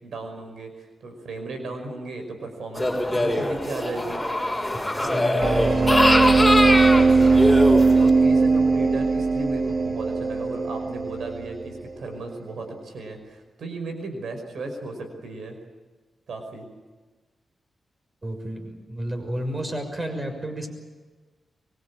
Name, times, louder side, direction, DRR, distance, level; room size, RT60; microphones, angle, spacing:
voice 1, 0.0-4.2 5.0-5.5 6.2-15.6 16.3-16.7, right 2 dB, 80° right, 5 dB, 5.6 m, -35 dB
sound 1, 2.8-8.1, left 1 dB, 10° left, 6.3 m, -23 dB
voice 2, 5.0-6.0 18.2-20.7, right 1 dB, 30° right, 5 dB, 6.4 m, -31 dB
sound 2, 5.4-11.9, right 4 dB, 55° right, 1.6 m, -19 dB
24.0 x 23.5 x 8.7 m, 1.3 s
cardioid pair, 80°, 0 cm